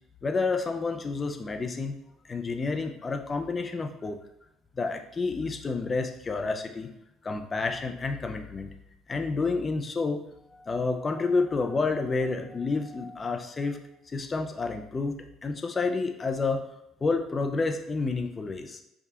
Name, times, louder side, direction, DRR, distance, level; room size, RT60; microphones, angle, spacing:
voice 1, 0.2-2.0 2.3-4.2 4.8-6.9 7.2-8.7 9.1-10.2 10.5-13.8 14.1-15.1 15.4-16.7 17.0-18.8, left 4 dB, 30° left, 5 dB, 0.5 m, -29 dB
4.7 x 2.4 x 2.8 m, 0.86 s
supercardioid pair, 75°, 0 cm